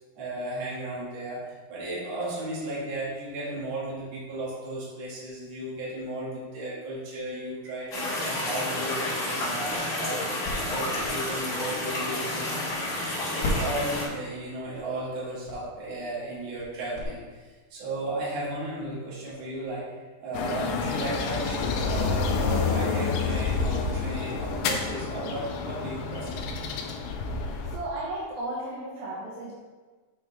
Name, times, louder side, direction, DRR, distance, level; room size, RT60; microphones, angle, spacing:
voice 1, 0.2-12.5 13.2-26.4, right 1 dB, 45° right, -7 dB, 2.7 m, -35 dB
sound 1, 7.9-14.1, left 1 dB, 30° left, 2.0 m, -30 dB
sound 2, 9.4-13.1 13.4-17.0, left 1 dB, 55° left, 2.1 m, -38 dB
sound 3, 20.3-27.8, left 4 dB, 80° left, 2.0 m, -29 dB
voice 2, 27.7-29.5, right 1 dB, 75° right, -5 dB, 2.8 m, -34 dB
7.4 x 6.4 x 3.4 m, 1.4 s
omnidirectional pair, 4.5 m